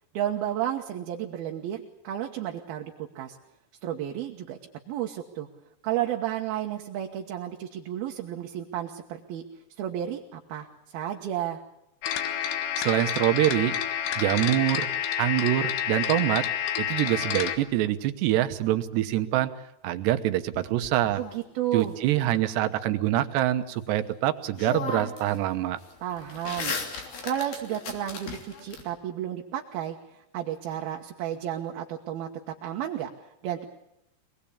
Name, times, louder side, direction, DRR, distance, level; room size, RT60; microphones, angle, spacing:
voice 1, 0.1-3.4 3.8-4.6 4.9-5.5 5.8-9.4 9.8-10.7 10.9-11.6 21.2-21.9 26.0-26.7 27.2-33.1 33.4-33.7, right 11 dB, 70° right, 1 dB, 3.0 m, -32 dB
sound 1, 12.0-17.6, left 9 dB, 80° left, 3.6 m, -29 dB
voice 2, 12.8-13.7 14.2-14.9 15.2-16.4 16.8-19.5 19.8-21.2 21.7-25.8, right 14 dB, 90° right, 9 dB, 3.3 m, -25 dB
sound 2, 20.5-21.8 24.1-24.2 24.6-25.4 25.7-28.8, left 5 dB, 60° left, 4.8 m, -36 dB
25.0 x 20.0 x 8.6 m, 0.82 s
omnidirectional pair, 4.7 m